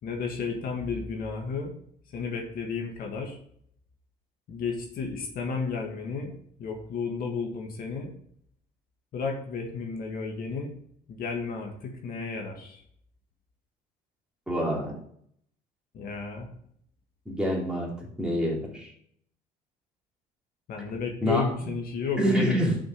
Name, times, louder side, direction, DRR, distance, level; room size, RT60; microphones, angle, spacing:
voice 1, 0.0-1.8 2.1-3.4 4.5-6.3 6.6-8.1 9.1-10.7 11.1-12.8 15.9-16.5 20.7-22.6, left 5 dB, 60° left, 2 dB, 1.9 m, -32 dB
voice 2, 14.5-15.0 17.3-17.9 18.2-18.9 21.2-21.5 22.2-22.8, equal, 5° right, -3 dB, 3.1 m, -26 dB
6.6 x 5.3 x 6.7 m, 0.65 s
cardioid pair, 110°, 17 cm